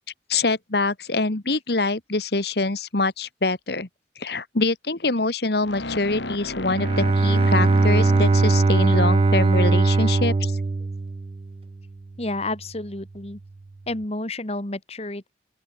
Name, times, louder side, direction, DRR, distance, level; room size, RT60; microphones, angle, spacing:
voice 1, 0.3-3.9 4.2-10.5, left 3 dB, 60° left, 1.5 m, -24 dB
sound 1, 5.6-9.7, left 1 dB, 75° left, 4.1 m, -34 dB
Bowed string instrument, 6.6-11.6, right 3 dB, 30° right, 0.3 m, -20 dB
voice 2, 12.2-13.4 13.9-15.3, left 2 dB, 35° left, 2.0 m, -30 dB
open air
head